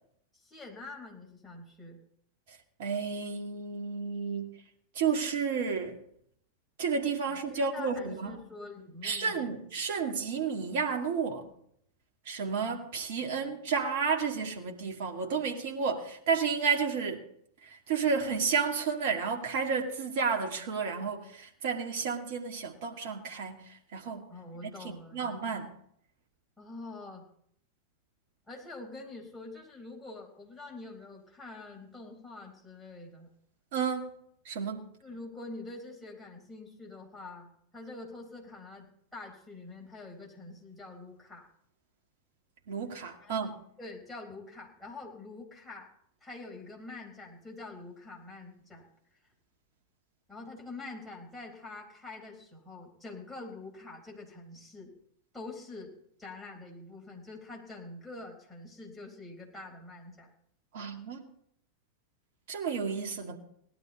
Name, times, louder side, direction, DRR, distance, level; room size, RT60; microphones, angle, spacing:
voice 1, 0.3-2.0 7.3-9.7 10.0-10.1 13.2-13.5 24.3-25.4 26.6-27.3 28.5-33.3 35.0-41.5 43.2-43.4 43.8-45.9 46.2-48.9 50.3-54.9 55.3-55.9 56.2-60.3, left 3 dB, ahead, 4.3 m, -46 dB
voice 2, 2.8-4.6 4.9-6.0 6.8-8.4 9.0-11.5 12.3-17.3 17.6-24.3 25.1-25.7 33.7-34.1 34.5-34.9 42.7-43.6 60.7-61.3 62.5-63.4, right 5 dB, 50° right, 2.2 m, -31 dB
18.0 x 12.0 x 4.1 m
figure-of-eight pair, 90°, 0 cm